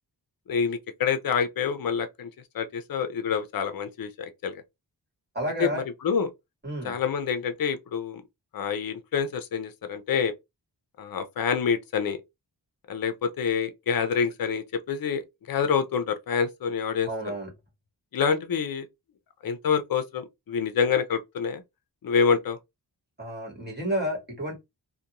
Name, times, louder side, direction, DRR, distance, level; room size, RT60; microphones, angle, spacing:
voice 1, 0.5-2.3 2.5-4.6 5.6-6.3 6.8-8.2 8.5-10.3 11.0-12.2 12.9-15.2 15.5-17.3 18.1-18.9 19.4-21.6 22.0-22.6, left 6 dB, 55° left, 0.5 m, -27 dB
voice 2, 5.3-5.8 6.6-6.9 17.1-17.5 23.2-24.6, equal, 25° right, 1.3 m, -31 dB
2.5 x 2.2 x 2.8 m
wide cardioid pair, 95°, 43 cm